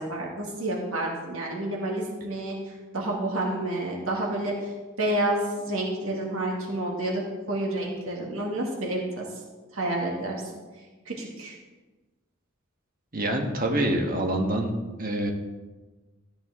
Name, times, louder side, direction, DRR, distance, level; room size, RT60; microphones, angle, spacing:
voice 1, 0.0-2.6 2.9-4.7 5.0-9.3 9.7-10.4 11.1-11.5, right 1 dB, 85° right, -2 dB, 2.2 m, -29 dB
voice 2, 13.1-14.7 15.0-15.3, right 1 dB, 45° right, 3 dB, 1.5 m, -26 dB
14.0 x 8.7 x 3.7 m, 1.2 s
head